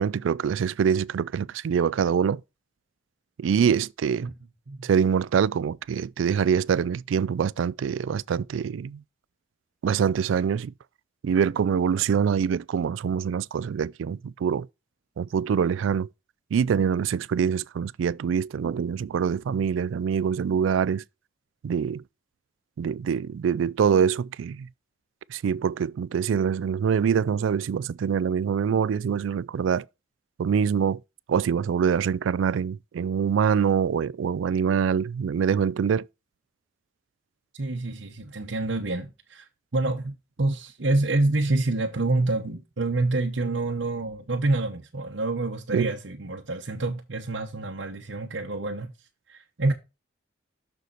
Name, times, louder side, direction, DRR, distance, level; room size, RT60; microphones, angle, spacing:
voice 1, 0.0-2.4 3.4-4.3 4.8-9.0 9.8-10.7 11.2-14.7 15.2-16.1 16.5-21.0 21.6-22.0 22.8-24.7 25.3-29.8 30.4-31.0 31.3-36.1 45.7-45.9, right 7 dB, 90° right, 0.3 m, -24 dB
voice 2, 37.5-48.9 49.3-49.7, right 2 dB, 70° right, 0.9 m, -27 dB
6.7 x 6.5 x 4.4 m
head